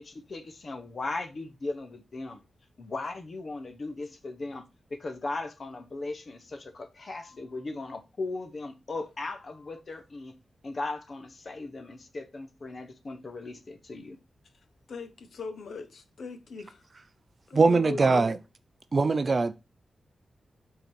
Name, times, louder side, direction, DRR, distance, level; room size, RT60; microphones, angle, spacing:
voice 1, 0.0-2.4 2.8-10.3 10.6-14.2, left 3 dB, 40° left, 0.9 m, -37 dB
voice 2, 14.9-16.8 17.5-18.3, left 4 dB, 65° left, 1.1 m, -39 dB
voice 3, 17.5-18.4 18.9-19.5, right 3 dB, 35° right, 0.5 m, -22 dB
8.2 x 3.9 x 4.6 m
wide cardioid pair, 165°, 0 cm